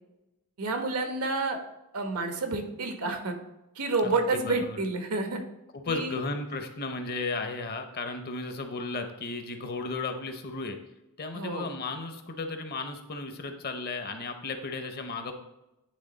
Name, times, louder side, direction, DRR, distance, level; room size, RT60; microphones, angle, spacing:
voice 1, 0.6-1.6 1.9-3.3 3.8-5.4 5.9-6.2 11.3-11.7, right 3 dB, 80° right, 5 dB, 1.0 m, -29 dB
voice 2, 4.0-4.8 5.7-10.8 11.2-15.3, left 3 dB, 45° left, 7 dB, 0.8 m, -34 dB
9.9 x 3.4 x 4.0 m, 0.92 s
head